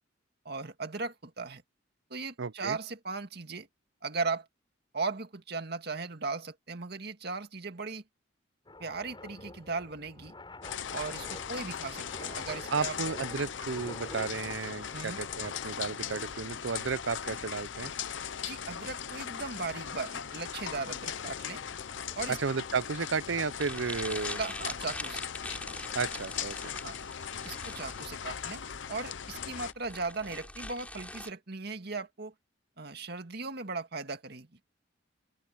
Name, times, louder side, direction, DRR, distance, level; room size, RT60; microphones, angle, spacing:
voice 1, 0.5-1.6 2.1-3.7 4.0-4.5 4.9-8.0 8.8-10.3 10.9-13.0 14.9-15.2 18.4-21.6 22.2-22.4 24.4-25.3 26.8-27.0 27.4-28.6 28.9-32.3 32.8-34.5, right 4 dB, 60° right, 2.0 m, -37 dB
voice 2, 2.4-2.8 12.7-17.9 22.3-24.4 25.9-26.7, right 5 dB, 90° right, 0.6 m, -33 dB
sound 1, 8.7-28.1, left 2 dB, 25° left, 7.7 m, -52 dB
sound 2, 10.6-29.7, left 8 dB, 75° left, 0.7 m, -39 dB
sound 3, 23.6-31.3, left 1 dB, 10° left, 4.2 m, -43 dB
open air
head